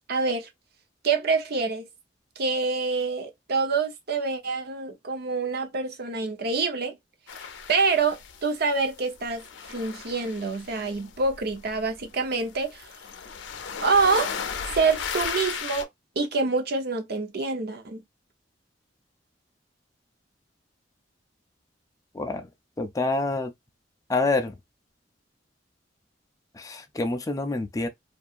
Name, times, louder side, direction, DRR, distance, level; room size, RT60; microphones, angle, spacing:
voice 1, 0.1-0.5 1.0-1.9 2.4-7.0 7.7-9.4 9.7-12.8 13.8-14.3 14.7-15.9 16.2-18.0, right 4 dB, 60° right, 0.7 m, -26 dB
sound 1, 7.3-8.9 9.1-15.8, left 6 dB, 80° left, 0.5 m, -36 dB
voice 2, 22.1-22.5 22.8-23.5 24.1-24.5 26.6-27.9, left 3 dB, 20° left, 0.4 m, -27 dB
2.8 x 2.3 x 2.3 m
head